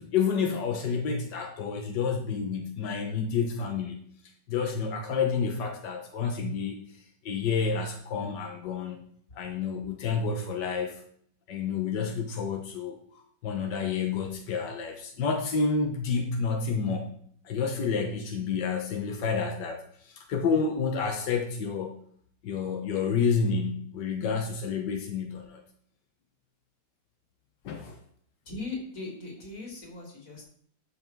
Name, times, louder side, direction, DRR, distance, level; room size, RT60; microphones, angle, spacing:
voice 1, 0.0-4.1 4.5-9.0 9.3-11.0 11.5-13.0 13.4-17.2 17.4-22.0 22.4-25.6 27.6-28.0, left 5 dB, 90° left, 3 dB, 1.7 m, -29 dB
voice 2, 28.5-30.4, left 3 dB, 50° left, 0 dB, 3.1 m, -39 dB
13.0 x 5.6 x 4.6 m, 0.62 s
omnidirectional pair, 1.8 m